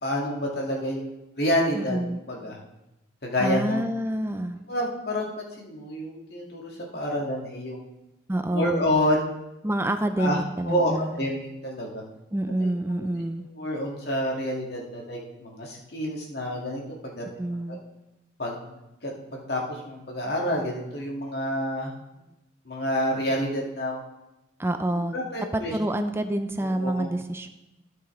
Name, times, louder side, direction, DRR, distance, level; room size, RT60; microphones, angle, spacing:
voice 1, 0.0-1.1 1.4-2.0 2.3-2.6 3.2-3.8 4.7-7.8 8.5-9.2 10.2-10.4 10.6-12.0 12.6-12.7 13.0-13.1 13.5-17.2 17.7-17.8 18.4-18.8 19.0-21.9 22.7-24.0 25.1-25.7 26.6-27.1, equal, 55° left, -2 dB, 2.0 m, -28 dB
voice 2, 1.7-2.2 3.4-4.6 8.3-8.9 9.6-11.2 12.3-13.5 17.4-17.8 24.6-25.2 25.5-27.5, right 1 dB, 10° right, 7 dB, 0.5 m, -27 dB
16.0 x 5.9 x 3.3 m, 0.96 s
head